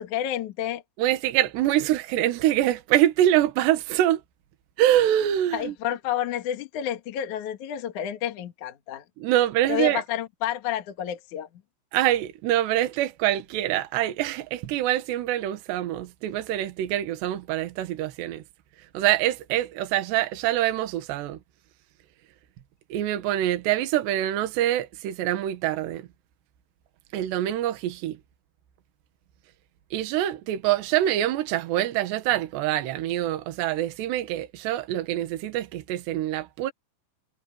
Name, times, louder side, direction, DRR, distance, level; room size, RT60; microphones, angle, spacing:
voice 1, 0.0-0.8 5.5-9.0 9.7-11.5, left 10 dB, 55° left, 2.4 m, -30 dB
voice 2, 1.0-4.2 4.8-5.7 9.2-10.0 11.9-18.4 18.9-21.4 22.9-26.1 27.1-28.2 29.9-36.7, right 13 dB, 70° right, 3.5 m, -25 dB
omnidirectional pair, 5.5 m